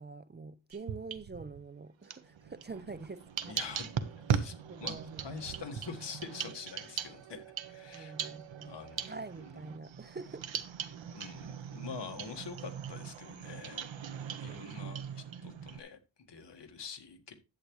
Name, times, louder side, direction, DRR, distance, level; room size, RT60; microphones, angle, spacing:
voice 1, 0.0-3.6 4.7-5.2 7.9-8.8 9.1-10.7 14.5-14.7, right 3 dB, 25° right, 0.4 m, -46 dB
sound 1, 0.7-1.6 2.0-15.8, right 8 dB, 85° right, 1.0 m, -39 dB
voice 2, 3.4-3.9 4.3-4.5 4.8-4.9 5.2-8.1 8.7-9.5 11.1-13.9 14.4-17.3, left 5 dB, 65° left, 1.7 m, -45 dB
11.0 x 8.4 x 3.1 m
wide cardioid pair, 125°, 45 cm